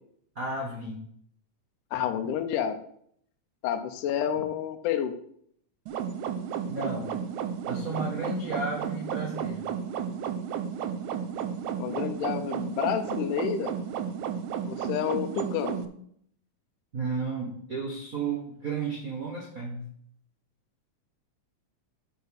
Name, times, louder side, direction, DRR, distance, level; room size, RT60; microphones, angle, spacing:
voice 1, 0.3-1.0 6.6-7.1 7.7-9.6 16.9-19.9, right 3 dB, 60° right, -1 dB, 0.9 m, -33 dB
voice 2, 1.9-2.8 3.6-5.2 11.8-13.7 14.7-15.8, left 9 dB, 80° left, 7 dB, 2.3 m, -29 dB
sound 1, 5.9-15.9, right 8 dB, 75° right, 1.9 m, -33 dB
7.7 x 4.9 x 6.5 m, 0.66 s
omnidirectional pair, 3.7 m